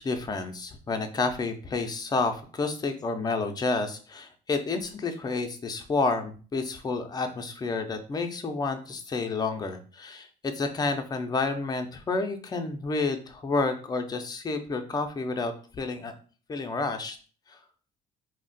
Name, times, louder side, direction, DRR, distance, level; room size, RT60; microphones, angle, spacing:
voice 1, 0.0-16.1 16.5-17.2 17.5-17.6, left 3 dB, 25° left, 6 dB, 0.5 m, -30 dB
2.4 x 2.1 x 3.8 m, 0.38 s
cardioid pair, 110°, 17 cm